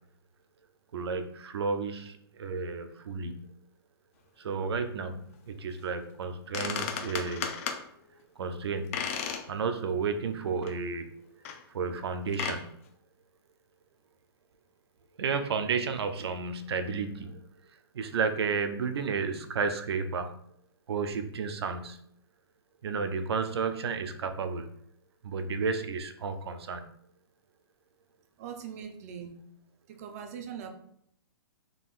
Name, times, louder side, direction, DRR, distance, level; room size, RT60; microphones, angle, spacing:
voice 1, 0.9-3.5 4.4-7.6 8.4-9.0 9.5-11.1 11.7-12.7 15.2-17.4 17.9-20.3 20.9-22.0 22.8-24.7 25.2-26.8, right 5 dB, 80° right, 8 dB, 0.5 m, -32 dB
sound 1, 6.2-6.3 6.5-7.8 8.9-9.5 9.9-10.0 10.6-10.7 11.4-11.6 12.3-12.6, left 7 dB, 35° left, 0.5 m, -34 dB
voice 2, 28.4-29.4 29.9-30.7, right 7 dB, 40° right, 5 dB, 0.5 m, -41 dB
3.8 x 3.6 x 2.4 m, 0.70 s
hypercardioid pair, 160°, 13 cm